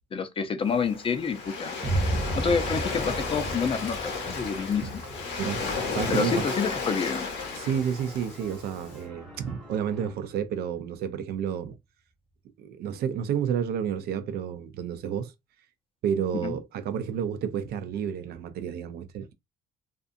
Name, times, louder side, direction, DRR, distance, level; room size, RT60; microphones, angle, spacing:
voice 1, 0.1-1.8 2.4-5.0 6.1-7.3 16.4-16.5, left 5 dB, 35° left, 0.5 m, -28 dB
Waves surf, 0.7-8.9, left 4 dB, 90° left, 1.1 m, -33 dB
Boom, 1.8-9.7, right 2 dB, 20° right, 0.5 m, -35 dB
sound 1, 2.2-10.1, equal, ahead, 0.9 m, -48 dB
voice 2, 5.4-6.5 7.5-11.8 12.6-15.3 16.0-19.3, right 8 dB, 70° right, 0.5 m, -30 dB
2.6 x 2.4 x 2.5 m
cardioid pair, 110°, 17 cm